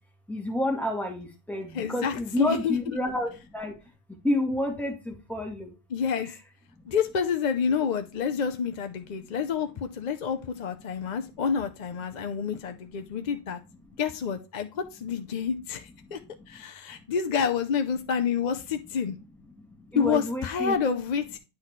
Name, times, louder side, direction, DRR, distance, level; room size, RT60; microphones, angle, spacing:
voice 1, 0.3-3.8 4.2-5.8 9.2-9.3 16.0-16.6 19.7-20.8, left 1 dB, ahead, 1 dB, 1.9 m, -30 dB
voice 2, 1.7-2.8 5.9-6.4 6.9-13.6 14.0-16.2 16.5-19.2 19.9-21.4, left 6 dB, 50° left, 7 dB, 0.7 m, -28 dB
9.5 x 4.1 x 3.1 m, 0.29 s
omnidirectional pair, 1.1 m